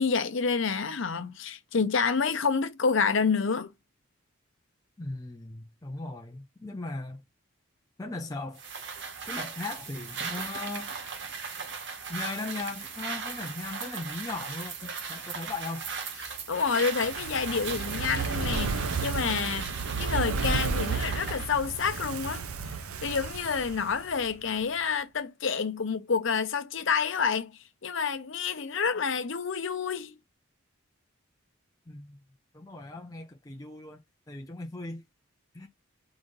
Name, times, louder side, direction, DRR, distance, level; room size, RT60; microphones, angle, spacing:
voice 1, 0.0-3.7 16.3-19.7 20.0-22.5 23.0-27.5 27.8-30.1, left 5 dB, 60° left, 0.7 m, -28 dB
voice 2, 5.0-7.2 8.0-8.6 9.3-10.9 12.1-15.9 31.9-32.2 32.5-34.0 34.3-35.0 35.5-35.7, left 2 dB, 15° left, 0.5 m, -38 dB
sound 1, 8.6-21.5, right 5 dB, 55° right, 1.0 m, -38 dB
Fire, 16.9-24.3 24.6-24.7, right 4 dB, 90° right, 0.7 m, -32 dB
4.9 x 2.6 x 3.8 m
head